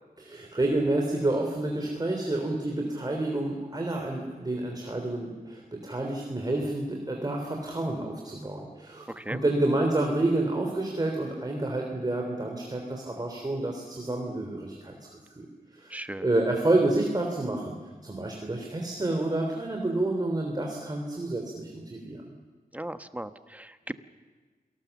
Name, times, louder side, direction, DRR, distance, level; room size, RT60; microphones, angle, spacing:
voice 1, 0.2-15.0 15.3-15.5 15.7-17.8 18.0-22.2, right 2 dB, 25° right, 1 dB, 3.4 m, -29 dB
voice 2, 9.1-9.4 15.9-16.3 22.7-23.9, right 1 dB, 10° right, 9 dB, 1.2 m, -37 dB
28.0 x 19.0 x 7.2 m, 1.4 s
wide cardioid pair, 85°, 15 cm